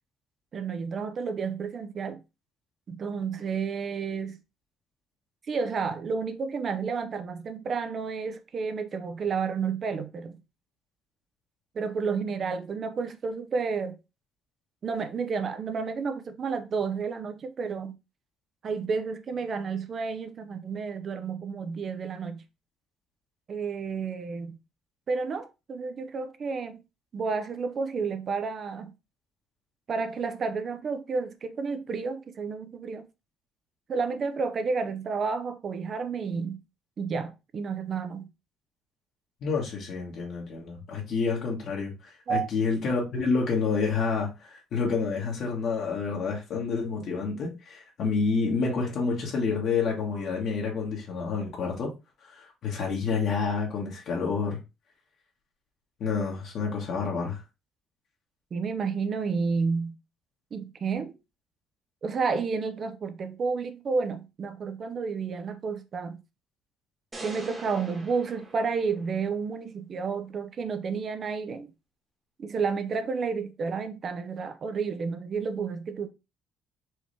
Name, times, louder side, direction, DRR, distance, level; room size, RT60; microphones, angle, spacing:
voice 1, 0.5-2.2 2.9-4.4 5.5-10.4 11.7-14.0 14.8-18.0 18.6-22.4 23.5-24.6 25.1-26.8 27.1-28.9 29.9-33.1 33.9-36.6 37.0-38.3 42.3-42.5 58.5-60.0 60.5-61.1 62.0-66.2 67.2-71.7 72.4-76.1, right 5 dB, 40° right, 0.7 m, -31 dB
voice 2, 39.4-51.9 52.2-54.6 56.0-57.4, left 5 dB, 60° left, 1.5 m, -29 dB
sound 1, 67.1-69.4, right 2 dB, 20° right, 1.4 m, -43 dB
4.7 x 2.9 x 3.2 m
cardioid pair, 115°, 0 cm